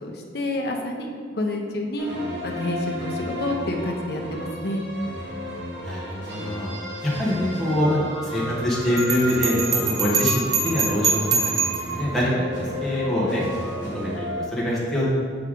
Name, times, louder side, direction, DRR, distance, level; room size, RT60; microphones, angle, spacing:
voice 1, 0.0-2.2 2.4-4.8, left 1 dB, 55° left, 1 dB, 0.8 m, -29 dB
sound 1, 2.0-14.5, equal, 70° right, 1.4 m, -33 dB
voice 2, 5.8-6.7 7.2-11.4 11.6-13.4 13.9-15.1, equal, ahead, -8 dB, 1.3 m, -24 dB
Bell, 9.0-11.9, right 5 dB, 20° right, 0.4 m, -24 dB
5.6 x 4.8 x 3.7 m, 2.2 s
head